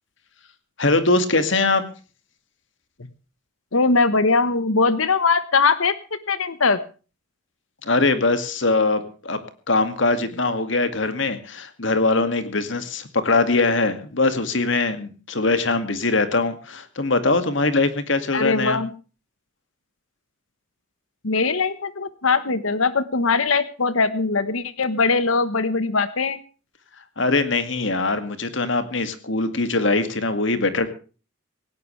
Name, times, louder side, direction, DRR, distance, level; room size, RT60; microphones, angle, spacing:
voice 1, 0.8-1.8 7.8-9.4 9.7-18.8 27.2-30.9, left 3 dB, 60° left, 10 dB, 2.2 m, -22 dB
voice 2, 3.7-6.8 18.3-18.9 21.2-26.4, left 4 dB, 80° left, 13 dB, 1.2 m, -21 dB
18.0 x 18.0 x 3.3 m, 0.36 s
head